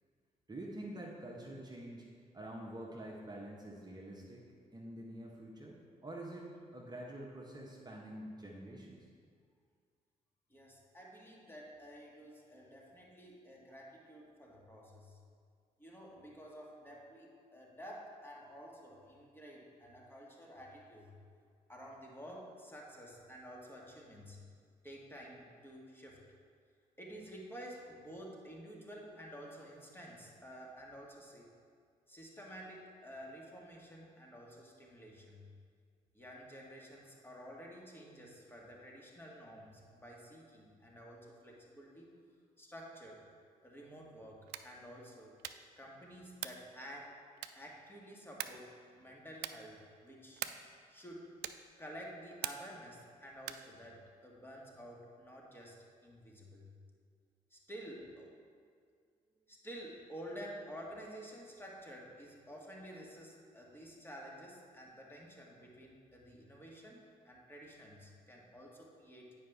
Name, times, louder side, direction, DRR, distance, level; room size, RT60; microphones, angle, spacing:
voice 1, 0.5-2.1 2.3-4.4 4.7-9.0, right 1 dB, 20° right, -3 dB, 1.3 m, -47 dB
voice 2, 10.5-15.2 15.8-21.1 21.7-24.4 24.8-26.2 27.0-31.5 32.1-35.5 36.1-42.1 42.6-43.2 43.6-45.4 45.8-47.2 47.5-50.5 50.9-51.3 51.8-55.8 56.0-56.7 57.5-58.3 59.5-69.3, equal, 10° left, -3 dB, 1.8 m, -51 dB
sound 1, 44.4-44.8 45.4-45.8 46.4-46.7 47.4-47.8 48.4-48.7 49.4-49.7 50.4-50.8 51.4-51.7 52.4-52.8 53.4-53.7, right 12 dB, 60° right, 0.4 m, -43 dB
9.3 x 5.2 x 3.5 m, 2.1 s
figure-of-eight pair, 40°, 19 cm